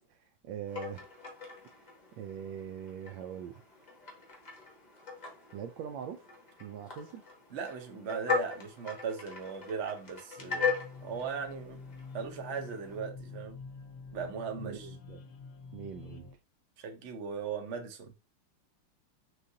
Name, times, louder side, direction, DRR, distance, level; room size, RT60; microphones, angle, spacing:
voice 1, 0.1-1.1 2.2-3.6 5.5-6.2 6.6-7.2 14.6-15.2 15.7-16.3, right 8 dB, 75° right, 1.1 m, -42 dB
sound 1, 0.7-13.0, left 5 dB, 30° left, 0.8 m, -39 dB
voice 2, 7.5-10.7 11.0-11.8 12.1-13.6 14.1-14.9 16.8-18.1, right 6 dB, 55° right, 0.7 m, -38 dB
sound 2, 10.4-16.4, left 4 dB, 65° left, 1.2 m, -47 dB
6.3 x 2.5 x 2.7 m
omnidirectional pair, 2.3 m